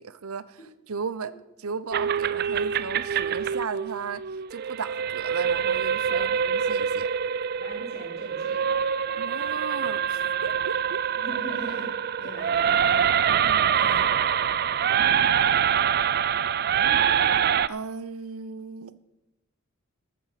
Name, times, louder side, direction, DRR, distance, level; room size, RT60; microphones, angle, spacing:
voice 1, 0.0-1.3 1.6-4.2 4.5-7.1 9.1-11.1 13.3-14.1 17.7-19.0, right 5 dB, 85° right, 0.7 m, -36 dB
sound 1, 1.9-17.7, right 8 dB, 45° right, 0.3 m, -25 dB
voice 2, 7.6-8.6 11.2-11.9 12.2-12.9, equal, 45° left, 3.8 m, -41 dB
13.5 x 9.3 x 5.7 m
head